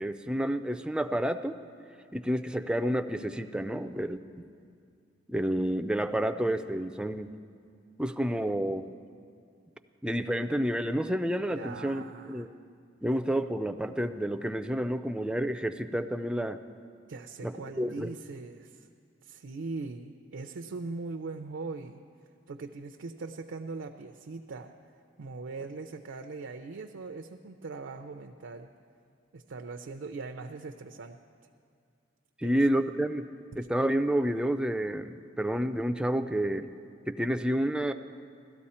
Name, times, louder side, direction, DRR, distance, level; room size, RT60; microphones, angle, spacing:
voice 1, 0.0-1.6 2.1-4.5 5.3-7.3 8.0-8.9 10.0-12.5 13.0-16.6 17.4-18.1 32.4-33.3 33.6-36.7 37.1-37.9, right 1 dB, 5° right, 9 dB, 0.3 m, -29 dB
voice 2, 11.5-12.5 17.1-18.9 19.2-22.0 22.5-24.7 25.2-28.7 29.3-31.2 32.4-32.8, right 3 dB, 80° right, 5 dB, 0.5 m, -40 dB
16.0 x 13.0 x 4.3 m, 2.3 s
head